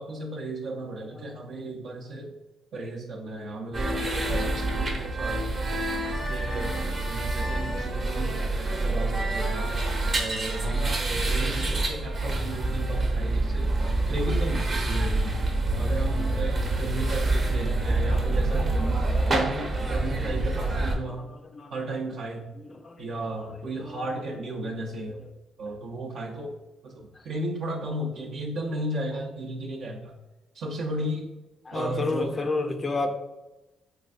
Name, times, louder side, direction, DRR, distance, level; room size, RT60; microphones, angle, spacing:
voice 1, 0.0-2.4 2.7-5.6 6.0-8.3 8.8-9.7 10.2-13.8 14.1-15.4 15.8-18.8 19.2-21.3 21.7-22.5 23.0-25.2 25.6-26.6 26.8-30.1 30.5-31.3 31.7-32.4, right 1 dB, 70° right, -2 dB, 0.5 m, -34 dB
sound 1, 3.7-21.0, right 2 dB, 40° right, 0.7 m, -27 dB
voice 2, 17.9-18.3 19.1-19.3 20.2-20.3 21.5-21.7 22.8-23.0 23.8-24.0 31.7-33.1, left 3 dB, 30° left, 6 dB, 0.4 m, -30 dB
3.3 x 3.1 x 2.4 m, 1.0 s
cardioid pair, 90°, 0 cm